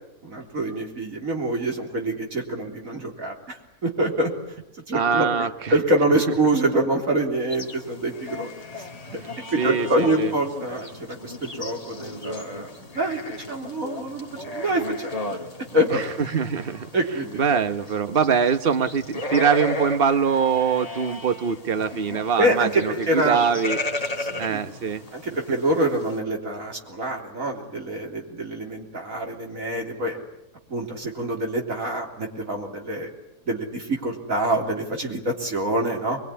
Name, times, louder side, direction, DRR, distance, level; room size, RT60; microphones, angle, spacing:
voice 1, 0.2-4.3 4.9-8.9 9.1-9.2 9.5-13.2 13.5-15.2 15.7-16.1 16.9-17.4 22.4-23.4 24.2-24.6 25.1-30.2 30.7-33.1 33.5-36.2, right 1 dB, 60° right, 1 dB, 4.0 m, -26 dB
voice 2, 4.9-5.7 9.6-10.3 15.9-16.9 17.3-23.8 24.4-25.0, right 6 dB, 40° right, 10 dB, 1.2 m, -23 dB
sound 1, 7.5-26.2, left 1 dB, 25° left, 1.9 m, -35 dB
25.0 x 21.5 x 10.0 m, 0.87 s
omnidirectional pair, 1.6 m